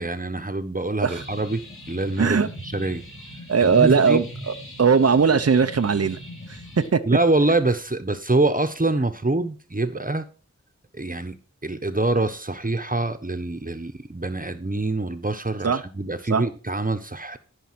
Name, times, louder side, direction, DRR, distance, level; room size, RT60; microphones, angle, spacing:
voice 1, 0.0-2.4 2.6-3.0 3.6-4.3 7.0-10.3 10.9-11.4 11.6-17.4, right 2 dB, 30° right, 8 dB, 1.2 m, -25 dB
sound 1, 1.1-6.9, left 1 dB, 45° left, 5.3 m, -40 dB
voice 2, 2.2-2.5 3.5-6.2 6.9-7.0 15.6-15.8 16.3-16.4, right 5 dB, 55° right, 8 dB, 0.8 m, -19 dB
13.0 x 5.7 x 5.9 m, 0.36 s
wide cardioid pair, 45°, 30 cm